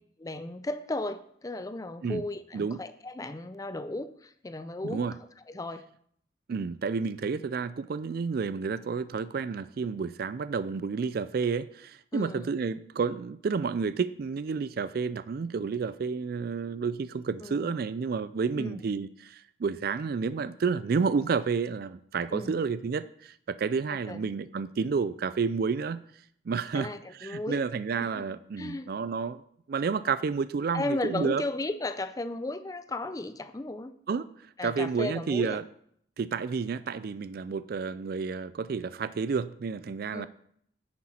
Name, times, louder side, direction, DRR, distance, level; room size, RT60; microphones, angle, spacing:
voice 1, 0.2-5.1 5.5-5.8 12.1-12.5 17.4-17.8 18.6-18.8 22.3-22.6 24.1-24.2 26.7-27.6 28.1-28.3 28.6-28.9 30.7-33.9 34.6-35.6 40.1-40.3, left 2 dB, 20° left, 12 dB, 0.4 m, -35 dB
voice 2, 4.8-5.2 6.5-26.0 26.5-29.4 29.7-31.4 34.1-34.3 34.6-35.6 36.2-40.3, right 5 dB, 55° right, 15 dB, 0.3 m, -30 dB
10.0 x 8.6 x 4.3 m, 0.67 s
head